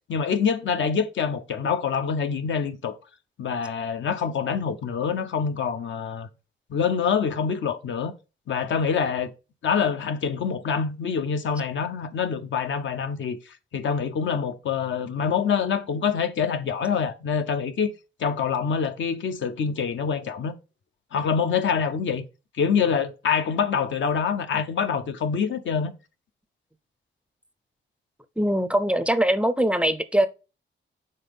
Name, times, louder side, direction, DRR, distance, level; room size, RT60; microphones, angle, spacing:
voice 1, 0.1-3.0 3.4-6.3 6.7-8.1 8.5-9.3 9.6-13.4 13.7-17.9 18.2-20.5 21.1-22.3 22.6-25.9, left 6 dB, 70° left, 0.8 m, -25 dB
voice 2, 28.4-30.3, right 1 dB, 5° right, 0.5 m, -22 dB
5.6 x 3.9 x 5.3 m
cardioid pair, 110°, 20 cm